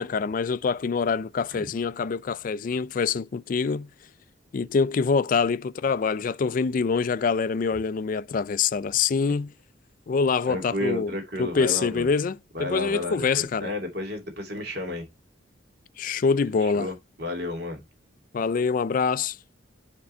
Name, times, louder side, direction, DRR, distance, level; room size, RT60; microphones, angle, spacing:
voice 1, 0.0-3.9 4.5-9.5 10.1-11.1 11.4-13.7 16.0-16.9 18.3-19.4, left 5 dB, 45° left, 0.3 m, -25 dB
voice 2, 10.5-12.1 12.5-15.1 16.6-17.8, left 1 dB, 55° right, 2.6 m, -32 dB
9.6 x 3.7 x 4.3 m
head